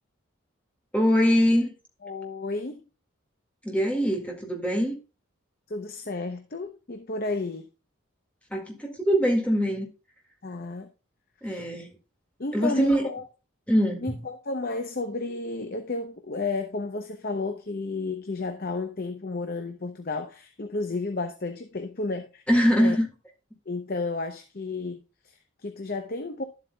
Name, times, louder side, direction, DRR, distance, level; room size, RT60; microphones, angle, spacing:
voice 1, 0.9-1.7 3.6-5.0 8.5-9.9 11.4-11.9 12.5-13.1 13.7-14.1 22.5-23.1, equal, 5° left, 1.9 m, -23 dB
voice 2, 2.0-2.8 5.7-7.7 10.4-10.9 11.4-11.7 12.4-13.2 14.0-22.4 22.8-23.0 23.7-26.4, left 3 dB, 45° left, 0.7 m, -32 dB
11.5 x 7.9 x 2.3 m
head